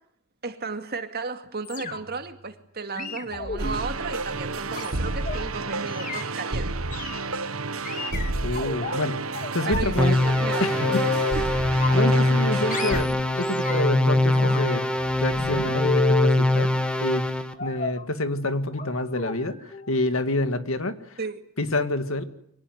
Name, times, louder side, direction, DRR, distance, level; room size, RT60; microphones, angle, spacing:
voice 1, 0.4-6.8 9.7-11.5 21.2-21.4, right 4 dB, 50° right, 2.3 m, -34 dB
sound 1, 1.7-2.3 2.9-5.4 5.9-6.2 6.9-7.2 7.9-9.0 9.4-9.9 10.2-11.4 11.8-12.4 12.7-14.0 14.3-16.4 17.6-18.0 18.7-18.9 19.2-19.4 19.7-19.9 20.2-20.3, left 4 dB, 40° left, 2.3 m, -32 dB
sound 2, 3.6-13.0, right 3 dB, 85° right, 1.5 m, -30 dB
voice 2, 8.4-10.2 10.6-11.0 11.9-14.9 15.2-16.7 17.0-17.3 17.6-19.6 19.9-21.0 21.6-22.2, left 2 dB, 70° left, 2.0 m, -27 dB
sound 3, 10.0-17.5, left 1 dB, 5° left, 1.5 m, -23 dB
24.5 x 18.5 x 9.5 m
head